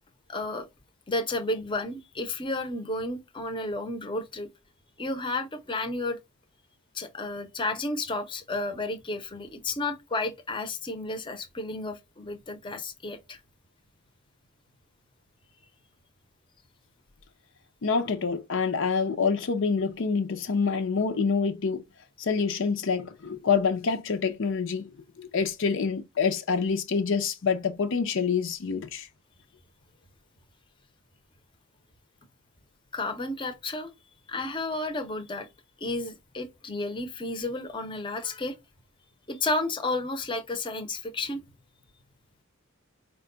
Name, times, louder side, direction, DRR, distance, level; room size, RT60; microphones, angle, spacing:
voice 1, 0.3-0.7 1.1-4.5 5.0-6.2 6.9-13.4 32.9-33.9 34.3-35.5 35.8-38.6 39.3-41.4, left 2 dB, 20° left, 0.7 m, -32 dB
voice 2, 17.8-21.8 22.2-24.9 25.2-29.1, left 5 dB, 60° left, 0.5 m, -26 dB
4.5 x 2.2 x 3.7 m
head